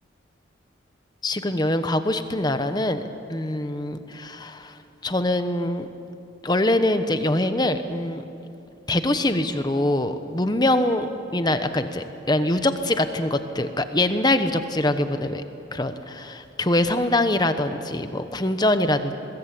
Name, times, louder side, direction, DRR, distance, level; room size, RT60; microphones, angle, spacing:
voice 1, 1.2-3.0 3.3-4.7 5.0-5.9 6.4-8.2 8.9-15.4 15.7-19.1, left 1 dB, 20° left, 9 dB, 1.1 m, -23 dB
23.0 x 21.5 x 8.5 m, 2.6 s
head